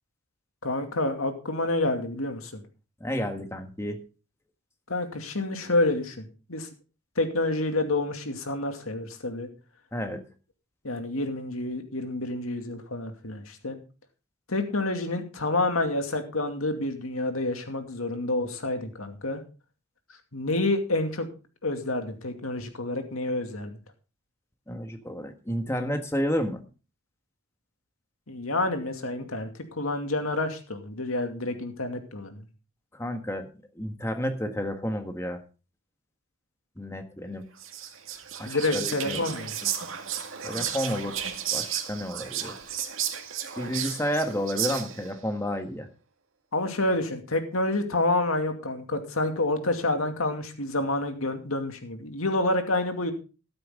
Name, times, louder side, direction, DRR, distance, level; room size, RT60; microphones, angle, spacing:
voice 1, 0.6-2.6 4.9-6.7 7.2-9.5 10.8-13.8 14.5-19.4 20.3-21.3 21.6-23.8 28.3-32.4 38.5-39.6 46.5-53.1, left 2 dB, 90° left, 5 dB, 2.5 m, -28 dB
voice 2, 3.0-4.0 9.9-10.2 24.7-26.6 33.0-33.5 33.7-35.4 36.8-37.4 38.4-39.2 40.4-41.2 41.5-42.5 43.6-45.9, equal, 15° left, 6 dB, 1.5 m, -31 dB
Whispering, 37.6-45.1, right 9 dB, 75° right, 2.0 m, -33 dB
13.5 x 12.5 x 3.8 m, 0.34 s
head